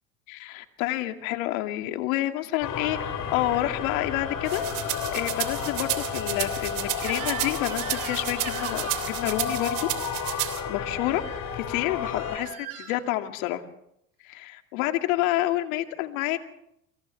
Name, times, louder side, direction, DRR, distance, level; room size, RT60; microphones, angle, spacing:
voice 1, 0.3-4.6 5.1-9.9 10.2-11.2 11.6-13.6 14.2-16.4, left 15 dB, 70° left, 7 dB, 2.5 m, -29 dB
sound 1, 2.6-12.4, left 7 dB, 50° left, 6.3 m, -32 dB
sound 2, 4.5-10.6, right 18 dB, 65° right, 3.3 m, -32 dB
Crying sobbing / Screech, 7.0-9.2 11.1-11.4 12.0-13.0, right 9 dB, 90° right, 3.8 m, -39 dB
28.5 x 26.5 x 3.5 m, 0.75 s
hypercardioid pair, 85°, 42 cm